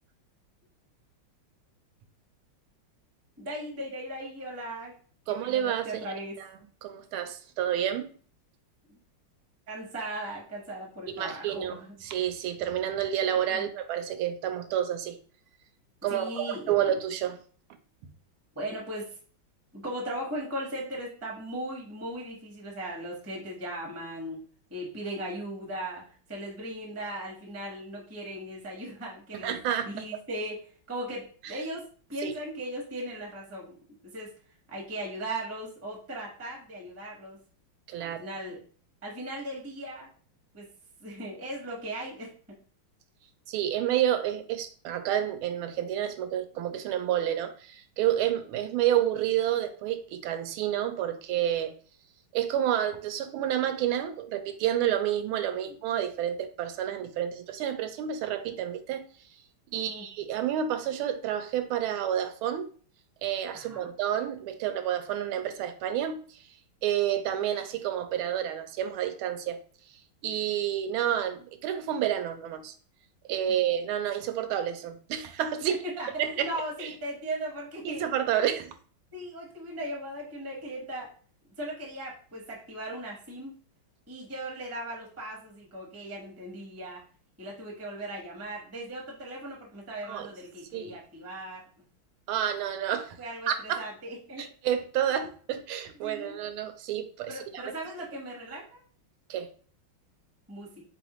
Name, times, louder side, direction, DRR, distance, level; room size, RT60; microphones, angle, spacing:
voice 1, 3.4-4.9 5.2-6.4 8.9-9.0 9.7-11.9 13.5-13.7 16.1-16.9 18.5-19.2 19.7-24.4 24.7-26.0 26.3-29.6 29.8-30.6 30.9-33.8 34.0-34.3 34.7-37.4 38.0-38.6 39.0-40.1 40.5-40.7 41.0-42.6 55.6-55.8 59.7-60.1 63.5-63.9 75.7-76.1 76.4-78.1 78.3-78.4 79.1-81.1 81.6-83.5 84.1-87.0 87.4-91.6 93.2-94.5 96.0-96.3 97.3-98.8 100.5-100.8, right 1 dB, 15° right, -2 dB, 0.4 m, -38 dB
voice 2, 5.3-6.0 6.8-8.1 11.1-15.2 16.0-17.4 29.4-29.9 31.4-31.6 32.2-32.3 37.9-38.3 43.5-51.7 52.3-59.0 59.7-62.7 63.2-66.4 66.8-69.6 70.2-72.7 73.2-75.7 76.2-76.5 76.8-76.9 77.8-78.7 90.1-90.3 90.7-90.9 92.3-93.2 93.5-93.8 94.4-97.7 99.3-99.5, right 10 dB, 85° right, 8 dB, 1.4 m, -29 dB
3.9 x 3.5 x 3.0 m, 0.43 s
omnidirectional pair, 2.2 m